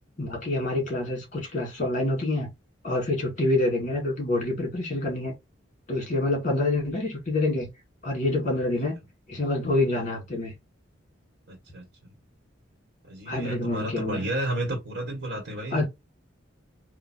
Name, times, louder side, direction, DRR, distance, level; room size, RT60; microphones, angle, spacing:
voice 1, 0.2-2.5 2.8-5.3 5.9-7.7 8.0-8.9 9.3-10.5 13.3-14.2 15.7-15.9, left 2 dB, 40° left, 2.2 m, -27 dB
voice 2, 11.5-11.8 13.0-15.8, right 1 dB, 60° right, 1.7 m, -32 dB
3.7 x 2.8 x 4.4 m
head